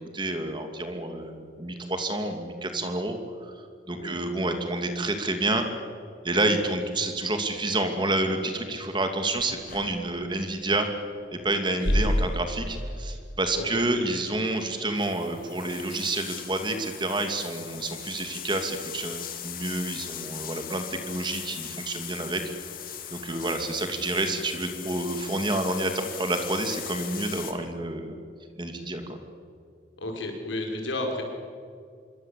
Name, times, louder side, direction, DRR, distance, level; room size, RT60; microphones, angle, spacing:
voice 1, 0.0-5.7 6.2-10.9 11.3-22.4 23.1-28.1 28.6-29.2, right 2 dB, 25° right, 6 dB, 2.6 m, -29 dB
sound 1, 9.4-10.4 11.7-13.3 13.6-13.7 14.1-27.5, left 2 dB, 50° left, 2.4 m, -35 dB
voice 2, 30.0-31.2, left 1 dB, 85° left, 2 dB, 5.6 m, -32 dB
26.5 x 23.5 x 8.4 m, 2.2 s
head